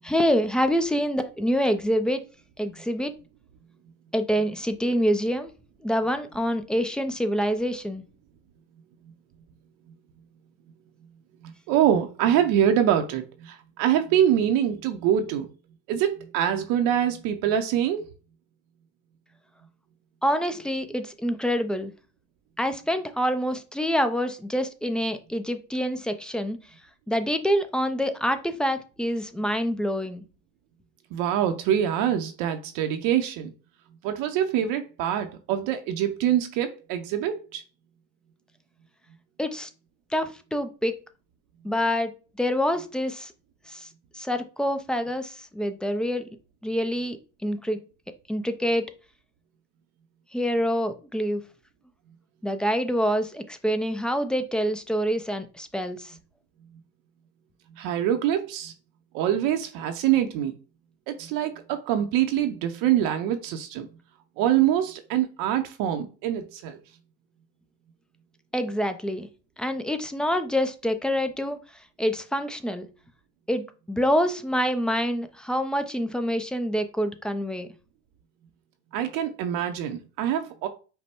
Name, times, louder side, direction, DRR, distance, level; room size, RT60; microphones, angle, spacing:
voice 1, 0.0-2.2 2.6-3.1 4.1-5.5 5.8-8.0 20.2-21.9 22.6-26.6 27.1-30.2 39.4-39.7 40.1-40.9 41.6-42.1 42.4-43.3 43.7-43.9 44.1-46.2 46.6-47.2 47.4-47.8 48.3-48.8 50.3-51.4 52.4-56.1 68.5-69.3 69.6-71.6 72.0-72.9 73.5-77.7, equal, ahead, 0.4 m, -26 dB
voice 2, 11.4-15.5 15.9-18.1 31.1-33.5 34.0-37.6 57.7-58.7 59.1-60.5 61.1-63.9 64.4-66.8 78.9-80.7, right 10 dB, 60° right, 0.7 m, -25 dB
5.3 x 2.1 x 4.4 m
supercardioid pair, 110°, 37 cm